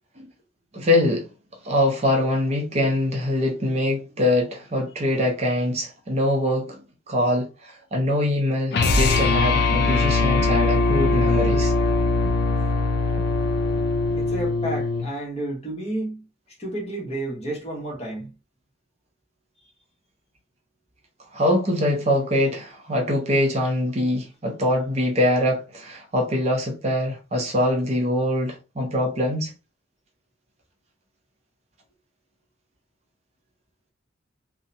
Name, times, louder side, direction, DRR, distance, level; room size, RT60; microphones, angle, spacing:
voice 1, 0.7-1.3 1.6-6.8 7.1-11.7 21.3-29.5, left 1 dB, 35° right, 0.6 m, -23 dB
sound 1, 8.7-15.1, left 3 dB, 55° left, 0.4 m, -21 dB
voice 2, 14.1-16.3 16.6-18.3, right 1 dB, 30° left, 1.1 m, -31 dB
2.6 x 2.1 x 2.6 m
head